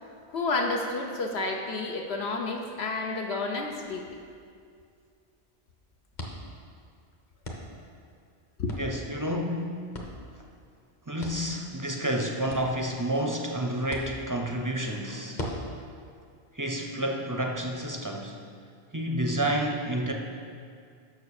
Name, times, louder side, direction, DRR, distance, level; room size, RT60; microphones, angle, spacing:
voice 1, 0.3-4.2 8.6-8.7, left 3 dB, 75° left, 2 dB, 1.0 m, -30 dB
sound 1, 4.3-17.7, left 1 dB, 45° left, 1.2 m, -44 dB
voice 2, 8.7-9.8 11.1-15.4 16.5-18.4 18.9-20.1, right 1 dB, 25° right, 1 dB, 0.5 m, -30 dB
7.1 x 6.2 x 6.5 m, 2.3 s
omnidirectional pair, 1.1 m